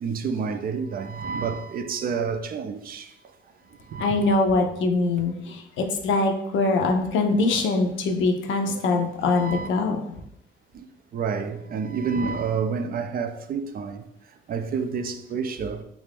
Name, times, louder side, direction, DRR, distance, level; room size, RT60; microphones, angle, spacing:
voice 1, 0.0-3.0 3.9-4.2 9.3-9.7 11.1-14.0 14.5-15.8, right 5 dB, 50° right, 0.4 m, -29 dB
voice 2, 4.0-10.0, left 3 dB, 75° left, 0.5 m, -23 dB
3.2 x 2.5 x 3.4 m
cardioid pair, 90°, 20 cm